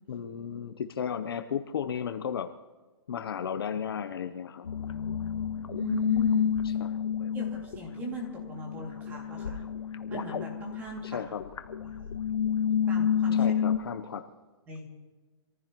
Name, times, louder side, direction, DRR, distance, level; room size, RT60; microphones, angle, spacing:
voice 1, 0.1-2.5 3.1-4.7 6.6-7.3 11.0-11.4 13.3-14.2, left 8 dB, 50° left, 9 dB, 0.8 m, -34 dB
sound 1, 4.7-13.8, left 8 dB, 90° left, 1.3 m, -29 dB
voice 2, 5.7-6.8 7.3-9.6 10.1-11.2 11.8-12.1 12.9-13.5 14.7-14.9, equal, 10° right, 0 dB, 2.4 m, -40 dB
26.0 x 15.0 x 3.0 m, 1.3 s
hypercardioid pair, 170°, 15 cm